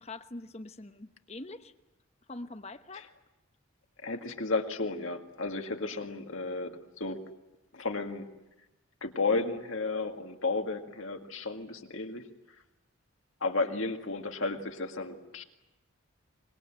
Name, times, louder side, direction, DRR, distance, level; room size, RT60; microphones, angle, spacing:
voice 1, 0.0-1.7 2.3-3.1, left 2 dB, 30° left, 9 dB, 1.0 m, -43 dB
voice 2, 4.0-7.2 7.7-8.3 9.0-12.2 13.4-15.4, left 3 dB, 70° left, 4 dB, 2.0 m, -33 dB
25.0 x 22.0 x 8.8 m, 1.0 s
head